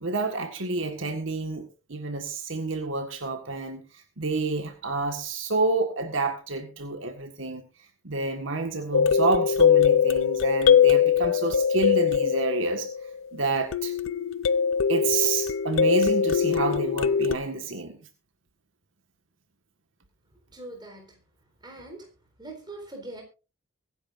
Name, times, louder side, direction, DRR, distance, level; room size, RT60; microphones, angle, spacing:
voice 1, 0.0-7.6 8.0-12.9 13.3-13.9 14.9-18.0, right 3 dB, 70° right, 1.7 m, -29 dB
sound 1, 8.9-13.2 13.7-17.3, left 7 dB, 70° left, 0.6 m, -22 dB
voice 2, 20.5-21.2 21.6-22.1 22.4-23.2, right 2 dB, 20° right, 4.1 m, -41 dB
23.5 x 10.0 x 2.6 m
head